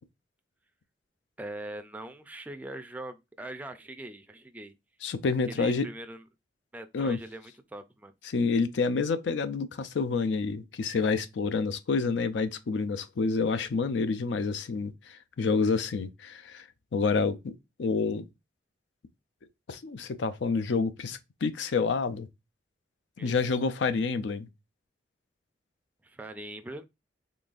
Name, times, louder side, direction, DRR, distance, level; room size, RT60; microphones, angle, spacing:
voice 1, 1.4-4.7 5.5-6.2 6.7-8.1 23.2-23.4 26.0-26.8, right 1 dB, 10° right, 0.3 m, -41 dB
voice 2, 5.0-5.9 6.9-7.2 8.2-16.6 16.9-18.3 19.7-22.3 23.2-24.5, left 4 dB, 80° left, 0.4 m, -28 dB
3.8 x 3.3 x 2.4 m
head